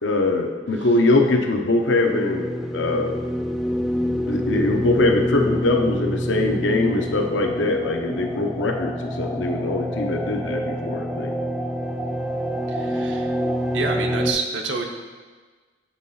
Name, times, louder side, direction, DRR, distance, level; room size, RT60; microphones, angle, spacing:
voice 1, 0.0-3.1 4.3-11.3, left 2 dB, 85° left, 3 dB, 0.7 m, -22 dB
sound 1, 1.9-14.3, equal, ahead, 0.4 m, -27 dB
voice 2, 12.7-13.3 13.7-14.8, right 4 dB, 80° right, 3 dB, 0.7 m, -28 dB
7.1 x 3.7 x 4.1 m, 1.4 s
head